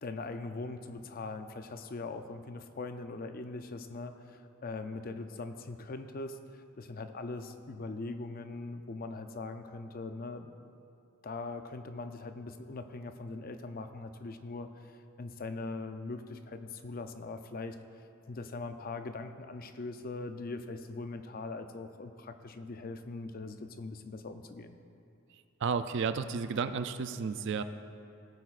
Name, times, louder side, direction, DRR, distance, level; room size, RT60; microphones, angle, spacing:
voice 1, 0.0-10.5 11.2-17.8 18.3-24.8, left 3 dB, 45° left, 8 dB, 0.5 m, -41 dB
voice 2, 25.6-27.6, right 5 dB, 60° right, 10 dB, 0.4 m, -32 dB
17.0 x 9.0 x 2.5 m, 2.6 s
head